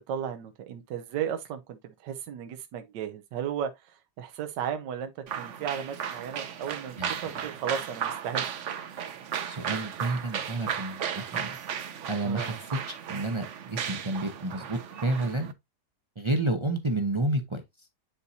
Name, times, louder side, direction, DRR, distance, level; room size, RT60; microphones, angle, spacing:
voice 1, 0.1-3.7 4.2-5.1 5.4-8.5 12.2-12.6, right 8 dB, 85° right, 1.4 m, -34 dB
sound 1, 5.3-15.5, right 8 dB, 55° right, 0.9 m, -35 dB
voice 2, 9.5-11.6 12.1-12.8 13.1-15.5 16.2-17.6, right 2 dB, 40° right, 0.4 m, -30 dB
9.4 x 4.1 x 2.7 m
omnidirectional pair, 1.9 m